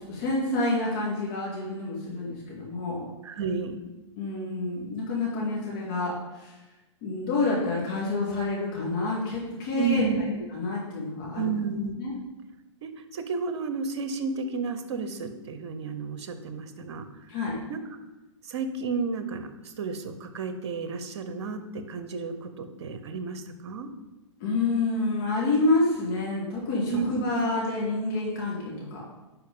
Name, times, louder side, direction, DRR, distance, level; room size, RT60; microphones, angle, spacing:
voice 1, 0.0-3.1 4.2-6.5 7.0-11.6 12.0-12.1 17.3-17.6 24.4-29.0, left 2 dB, 45° left, -4 dB, 2.1 m, -28 dB
voice 2, 3.2-3.8 9.8-10.2 11.3-12.0 12.8-17.1 17.7-17.8 18.5-19.5 19.8-23.9 26.9-27.2, right 5 dB, 60° right, 9 dB, 0.9 m, -32 dB
10.5 x 4.7 x 3.8 m, 1.1 s
figure-of-eight pair, 105°, 16 cm